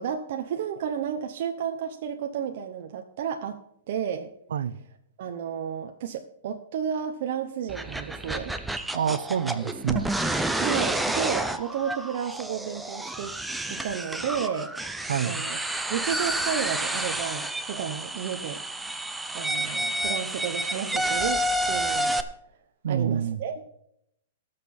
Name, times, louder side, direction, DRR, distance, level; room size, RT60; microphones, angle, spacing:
voice 1, 0.0-3.6 3.9-4.3 5.2-8.5 10.5-13.3 13.7-15.0 15.2-15.6 15.9-18.6 19.3-22.2 22.9-23.6, right 8 dB, 45° right, 0.8 m, -32 dB
sound 1, 7.7-22.2, right 1 dB, 5° right, 0.5 m, -30 dB
voice 2, 8.9-10.1 15.1-15.4 22.8-23.4, right 8 dB, 80° right, 0.7 m, -27 dB
18.5 x 6.7 x 4.3 m
hypercardioid pair, 170°, 0 cm